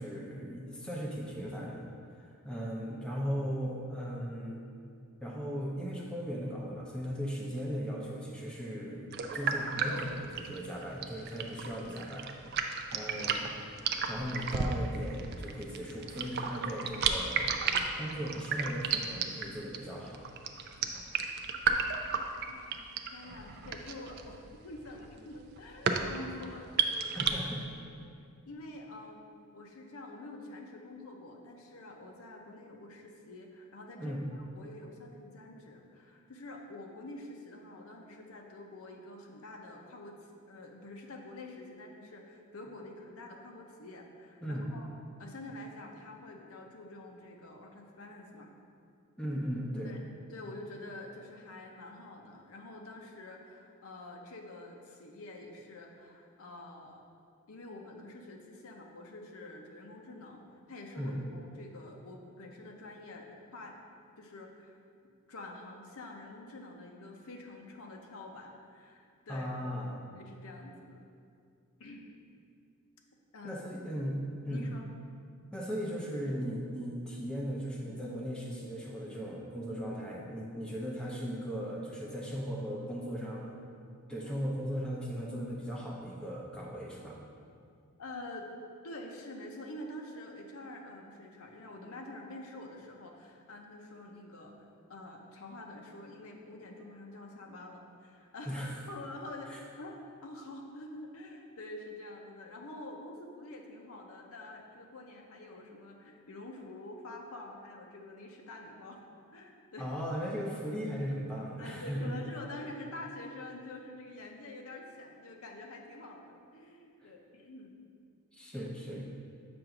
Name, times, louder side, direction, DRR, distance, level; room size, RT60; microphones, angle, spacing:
voice 1, 0.0-1.9 2.2-4.6 5.2-12.3 12.5-13.5 14.1-17.5 17.8-20.2 27.1-27.6 34.0-34.3 44.4-44.8 49.2-49.9 61.0-61.2 69.3-70.0 73.4-74.7 75.5-83.6 84.1-87.2 98.5-98.7 99.5-99.6 109.8-112.0 117.0-117.1 118.3-119.1, equal, 5° left, -4 dB, 0.6 m, -37 dB
sound 1, 9.1-27.3, right 6 dB, 45° right, 0.4 m, -33 dB
voice 2, 22.5-27.2 28.0-28.1 28.5-29.2 29.5-40.2 40.5-44.9 45.2-48.5 49.8-50.0 50.3-57.0 57.5-60.4 60.7-63.7 64.2-64.8 65.3-69.6 70.1-71.0 71.8-72.0 73.3-73.6 74.3-74.8 88.0-88.5 88.8-94.5 94.9-100.0 100.2-109.0 109.3-109.9 111.6-117.7 118.5-118.7, left 2 dB, 70° left, 1 dB, 0.7 m, -47 dB
7.8 x 2.6 x 5.8 m, 2.3 s
head